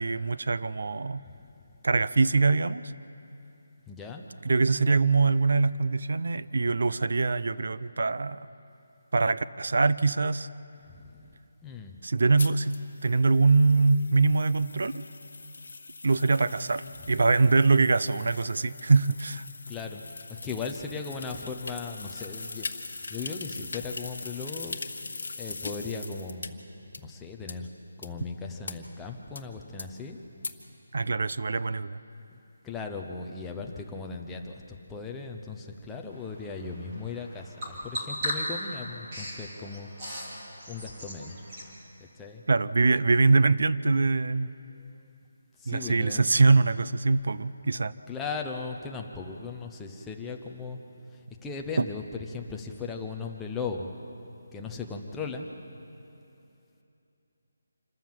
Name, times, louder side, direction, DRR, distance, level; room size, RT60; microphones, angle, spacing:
voice 1, 0.0-1.2 1.8-2.9 4.4-8.5 9.1-10.5 12.0-15.0 16.0-19.5 30.9-32.0 42.5-44.5 45.7-47.9 51.8-51.9, right 3 dB, 55° right, 15 dB, 0.5 m, -23 dB
voice 2, 3.9-4.3 10.9-11.3 11.6-12.0 19.7-20.0 20.3-26.6 27.0-27.7 28.0-30.2 32.3-40.2 40.7-41.4 42.2-42.4 44.8-44.9 45.6-46.2 48.1-50.8 51.1-52.0 52.3-54.0 54.5-55.5, left 4 dB, 5° left, 1 dB, 0.6 m, -38 dB
sound 1, 12.4-26.5 26.9-27.0 27.5-27.6 28.0-28.1 28.7-28.8 29.4-29.5 29.8-29.9 30.4-30.5, left 3 dB, 55° left, 1.3 m, -41 dB
Bird vocalization bird call bird song, 36.1-41.7, equal, 15° right, 2.8 m, -38 dB
27.0 x 13.5 x 7.4 m, 2.8 s
hypercardioid pair, 180°, 0 cm